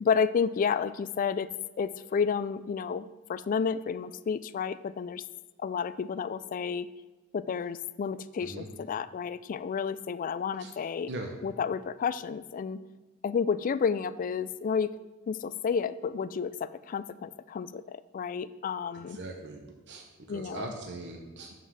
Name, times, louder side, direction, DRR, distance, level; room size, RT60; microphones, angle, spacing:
voice 1, 0.0-1.5 1.8-5.2 5.6-6.9 7.3-11.1 11.4-12.8 13.2-14.9 15.3-19.2 20.3-20.7, left 6 dB, 40° left, 15 dB, 0.3 m, -31 dB
voice 2, 19.1-21.5, right 2 dB, 60° right, 2 dB, 0.9 m, -41 dB
7.4 x 5.9 x 5.6 m, 1.2 s
head